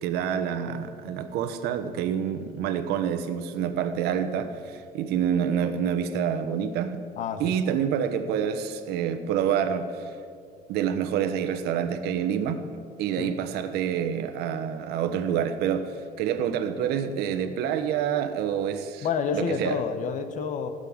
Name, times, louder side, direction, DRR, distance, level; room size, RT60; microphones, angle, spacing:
voice 1, 0.0-7.0 7.4-10.1 10.7-12.6 13.0-19.1 19.3-19.8, right 8 dB, 75° right, 9 dB, 1.2 m, -27 dB
voice 2, 7.2-7.6 13.2-13.4 19.0-20.7, left 6 dB, 50° left, 10 dB, 1.2 m, -29 dB
16.0 x 6.8 x 9.7 m, 2.3 s
cardioid pair, 145°, 17 cm